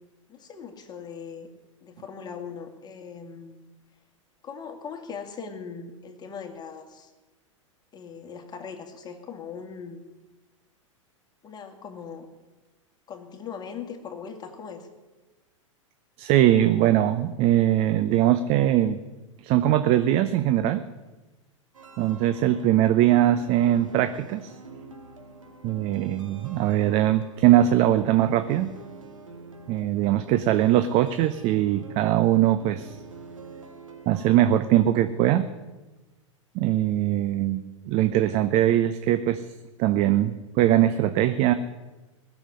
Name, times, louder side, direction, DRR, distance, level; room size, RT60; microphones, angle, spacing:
voice 1, 0.3-1.5 1.8-3.6 4.4-7.1 7.9-10.0 11.4-12.3 13.1-14.9 30.5-30.6, left 6 dB, 25° left, 4 dB, 2.3 m, -40 dB
voice 2, 16.2-19.0 19.4-20.8 22.0-24.5 25.6-28.7 29.7-32.9 34.1-35.5 36.5-39.4 39.8-41.5, right 12 dB, 40° right, 11 dB, 0.8 m, -21 dB
sound 1, 21.7-34.4, right 3 dB, 75° right, 2.6 m, -46 dB
20.0 x 7.2 x 9.6 m, 1.2 s
figure-of-eight pair, 95°, 17 cm